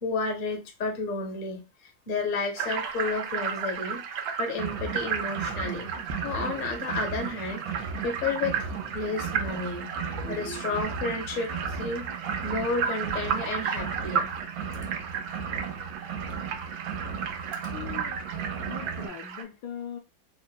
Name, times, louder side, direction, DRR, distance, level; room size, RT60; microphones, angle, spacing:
voice 1, 0.0-1.6 2.1-4.0 4.4-5.9 6.2-12.1 12.4-14.3, left 3 dB, 45° left, 0.6 m, -32 dB
sound 1, 2.6-19.4, right 7 dB, 70° right, 0.9 m, -34 dB
sound 2, 4.5-19.1, right 6 dB, 85° right, 1.4 m, -36 dB
voice 2, 17.7-18.2 18.7-20.0, left 8 dB, 70° left, 1.0 m, -39 dB
3.6 x 2.0 x 2.2 m
omnidirectional pair, 2.1 m